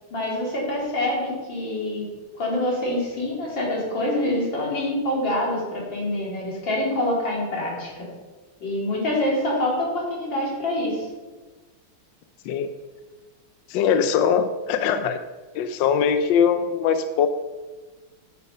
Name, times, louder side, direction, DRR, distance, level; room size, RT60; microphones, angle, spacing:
voice 1, 0.1-2.1 2.4-8.1 8.6-11.1, left 1 dB, 55° left, -3 dB, 3.6 m, -26 dB
voice 2, 13.7-15.2 15.5-17.3, left 7 dB, 75° left, 9 dB, 1.1 m, -21 dB
8.8 x 8.5 x 5.4 m, 1.3 s
omnidirectional pair, 2.4 m